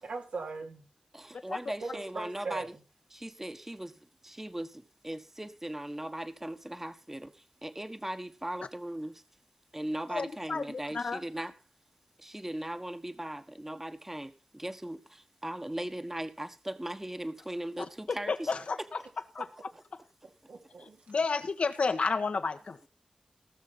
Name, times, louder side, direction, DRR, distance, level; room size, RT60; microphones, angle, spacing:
voice 1, 0.0-0.8 1.8-2.7 20.5-21.0, right 4 dB, 90° right, 3.4 m, -39 dB
voice 2, 1.1-2.7 3.1-9.2 9.7-11.5 12.2-18.5, right 1 dB, 15° right, 1.3 m, -39 dB
voice 3, 10.1-11.2 17.8-19.0 19.4-19.5 21.1-22.9, left 4 dB, 65° left, 1.5 m, -31 dB
18.5 x 6.6 x 5.6 m
wide cardioid pair, 70°, 2 cm